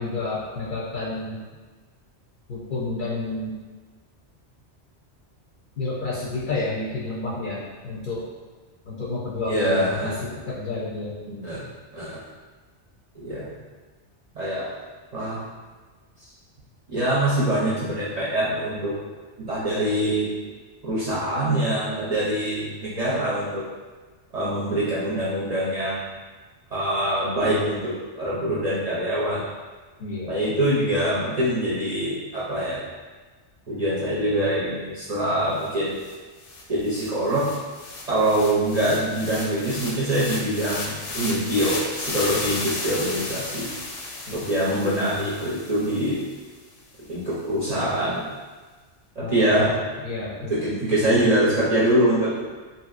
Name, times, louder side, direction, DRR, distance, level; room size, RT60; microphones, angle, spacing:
voice 1, 0.0-1.4 2.5-3.5 5.8-8.2 8.8-10.1 10.5-11.1 30.0-30.4 44.3-44.4 49.2-49.5 50.0-50.5, left 3 dB, 55° left, -6 dB, 0.7 m, -30 dB
voice 2, 9.4-10.2 11.3-11.6 11.9-12.2 13.2-13.5 14.4-14.7 15.1-15.4 16.9-18.9 19.4-20.3 20.8-23.6 24.3-26.1 26.7-29.4 30.3-32.8 33.7-36.0 36.7-37.4 38.1-43.7 44.3-46.2 47.1-48.2 49.2-49.7 50.4-52.3, right 1 dB, 45° right, -9 dB, 0.6 m, -24 dB
sound 1, 35.6-35.7 36.0-46.3, left 2 dB, 85° left, 0.9 m, -34 dB
2.8 x 2.7 x 2.4 m, 1.4 s
omnidirectional pair, 1.2 m